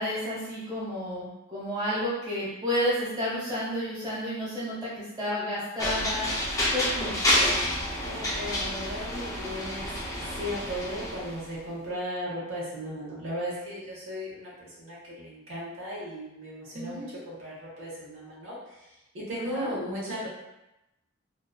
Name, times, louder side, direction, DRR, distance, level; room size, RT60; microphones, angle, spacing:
voice 1, 0.0-6.3 6.7-7.2 16.7-17.0 19.3-19.7, equal, 20° right, -9 dB, 1.1 m, -31 dB
sound 1, 5.8-11.4, left 1 dB, 15° left, 0.4 m, -29 dB
voice 2, 8.0-9.9 10.4-18.9 19.1-20.3, equal, 75° right, -7 dB, 0.8 m, -36 dB
2.4 x 2.2 x 2.3 m, 0.94 s
head